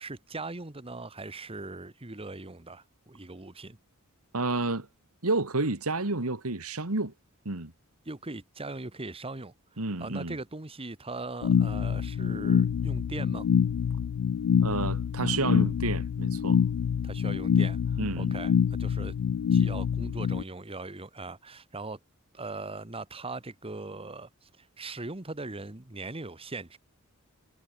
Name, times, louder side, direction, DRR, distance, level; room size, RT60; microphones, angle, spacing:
voice 1, 0.0-3.8 8.0-13.5 17.0-19.1 19.5-22.0 22.3-26.8, right 2 dB, 25° right, 1.5 m, -40 dB
voice 2, 4.3-4.9 5.2-7.1 7.5-7.7 9.8-10.4 14.6-16.6 18.0-18.3, right 3 dB, 75° right, 2.2 m, -30 dB
sound 1, 11.4-20.4, left 7 dB, 70° left, 0.3 m, -26 dB
head